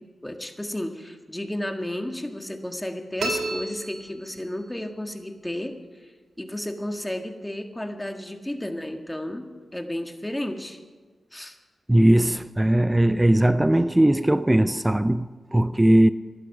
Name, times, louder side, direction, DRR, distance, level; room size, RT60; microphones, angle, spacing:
voice 1, 0.2-6.1 6.4-10.8 11.3-11.6, left 1 dB, 10° left, 1.7 m, -33 dB
sound 1, 3.2-4.8, right 2 dB, 85° right, 2.7 m, -32 dB
voice 2, 11.9-16.1, right 1 dB, 15° right, 0.5 m, -19 dB
14.5 x 12.0 x 6.0 m
cardioid pair, 45°, 0 cm